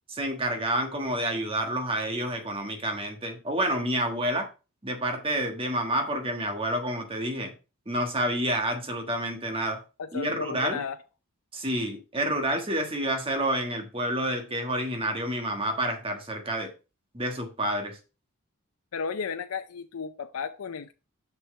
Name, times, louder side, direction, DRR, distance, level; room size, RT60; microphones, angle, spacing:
voice 1, 0.1-4.5 4.8-7.5 7.9-9.8 10.1-10.8 11.5-16.7 17.1-18.0, right 1 dB, 25° right, 1.4 m, -29 dB
voice 2, 10.0-11.0 18.9-20.9, left 6 dB, 85° left, 0.5 m, -34 dB
6.6 x 6.1 x 4.3 m
head